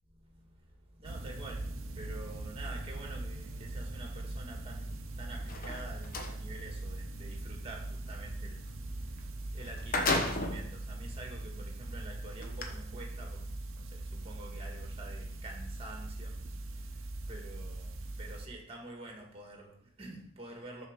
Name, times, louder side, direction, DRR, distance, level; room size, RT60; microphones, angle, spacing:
voice 1, 0.1-9.2 9.5-20.9, right 2 dB, 25° right, 1 dB, 1.5 m, -48 dB
sound 1, 1.0-18.5, right 2 dB, 65° right, 0.7 m, -41 dB
sound 2, 5.4-6.3 9.2-9.3 9.6-10.7 11.4-11.5 12.4-12.6, left 2 dB, 40° left, 1.0 m, -32 dB
6.5 x 4.5 x 6.5 m, 0.68 s
head